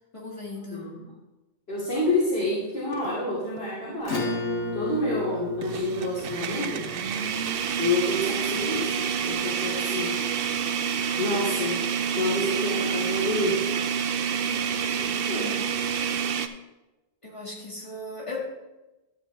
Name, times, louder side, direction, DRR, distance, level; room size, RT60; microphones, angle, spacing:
voice 1, 0.1-0.9 14.4-15.7 17.2-18.5, left 2 dB, 25° left, -3 dB, 2.0 m, -38 dB
voice 2, 0.7-1.1 1.7-4.3 4.7-6.9 7.8-10.4 11.2-11.8 12.1-13.7 14.6-14.7 15.3-15.6, left 1 dB, 60° left, -9 dB, 2.8 m, -28 dB
sound 1, 2.9-3.1 3.6-3.7 5.6-16.5, right 7 dB, 60° right, 0.7 m, -28 dB
Acoustic guitar / Strum, 4.0-9.0, left 2 dB, 80° left, 2.2 m, -33 dB
12.5 x 7.5 x 3.4 m, 1.1 s
omnidirectional pair, 1.2 m